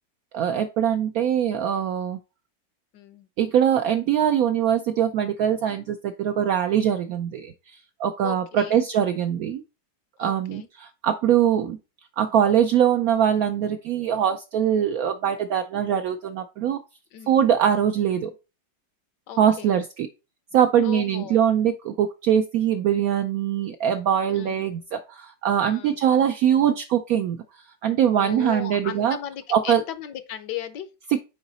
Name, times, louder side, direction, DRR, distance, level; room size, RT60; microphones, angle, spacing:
voice 1, 0.3-2.2 3.4-9.6 10.2-11.8 12.2-16.8 17.3-18.3 19.4-20.1 20.5-27.4 27.8-29.2 29.5-29.8 31.1-31.2, right 9 dB, 75° right, 0.8 m, -22 dB
voice 2, 2.9-3.3 8.2-8.8 10.2-10.7 17.1-17.4 19.3-19.8 20.8-21.4 24.3-24.6 25.7-26.0 28.2-30.9, left 11 dB, 75° left, 1.2 m, -36 dB
6.9 x 4.8 x 4.0 m
omnidirectional pair, 2.0 m